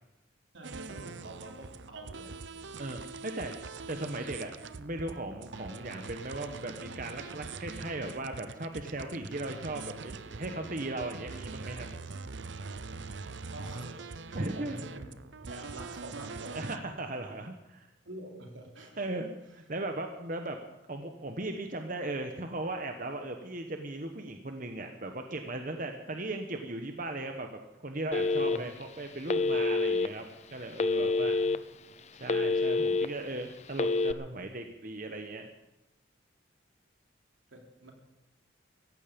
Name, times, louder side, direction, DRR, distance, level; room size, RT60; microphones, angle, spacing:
voice 1, 0.5-2.4 13.5-15.1 15.4-16.8 18.1-19.0 28.3-28.6 31.0-31.6 37.5-37.9, right 1 dB, 85° right, 1 dB, 3.6 m, -46 dB
sound 1, 0.6-16.8, right 4 dB, 70° right, 0.7 m, -43 dB
voice 2, 2.8-3.5 3.9-11.9 14.3-14.8 16.5-17.9 19.0-20.6 20.9-27.5 27.8-30.2 30.5-31.4 32.2-35.5, right 2 dB, 45° right, 5 dB, 1.2 m, -37 dB
Telephone, 28.1-28.8 29.3-30.1 30.8-31.6 32.0-33.1 33.7-34.1, left 3 dB, 35° left, 0.6 m, -27 dB
17.0 x 15.0 x 5.2 m, 1.0 s
head